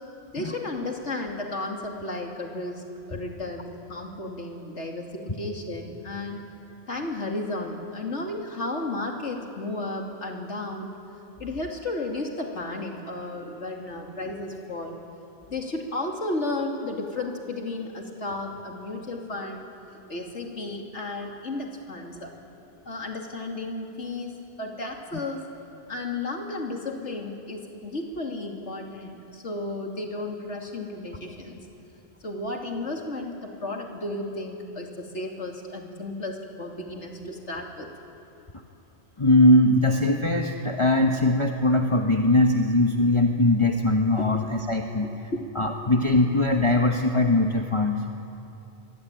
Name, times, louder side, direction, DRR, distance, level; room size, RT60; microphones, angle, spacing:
voice 1, 0.3-2.8 3.1-6.5 6.9-10.9 11.4-15.0 15.5-19.6 20.1-22.3 22.8-25.5 25.9-31.6 32.2-37.9 45.3-45.4, left 2 dB, 80° left, 2 dB, 3.1 m, -33 dB
voice 2, 39.2-45.1 45.5-48.0, left 1 dB, 25° left, 2 dB, 1.3 m, -21 dB
24.0 x 24.0 x 9.1 m, 2.8 s
omnidirectional pair, 1.2 m